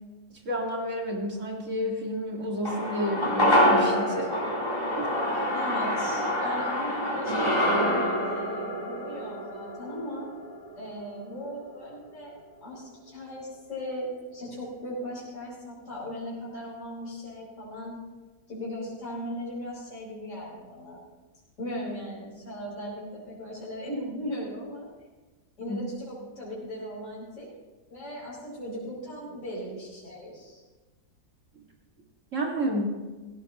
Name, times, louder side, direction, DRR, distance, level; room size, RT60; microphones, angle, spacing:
voice 1, 0.3-4.3 5.0-5.5 25.6-25.8 32.3-33.0, equal, 40° right, 0 dB, 2.4 m, -31 dB
sound 1, 2.6-11.1 11.4-11.5, equal, 15° left, 3.5 m, -26 dB
voice 2, 5.5-10.3 10.8-12.3 12.6-18.0 18.5-21.0 21.6-24.9 25.6-27.5 27.9-30.6, equal, 40° left, -7 dB, 5.2 m, -38 dB
17.0 x 15.5 x 3.0 m, 1.2 s
omnidirectional pair, 2.0 m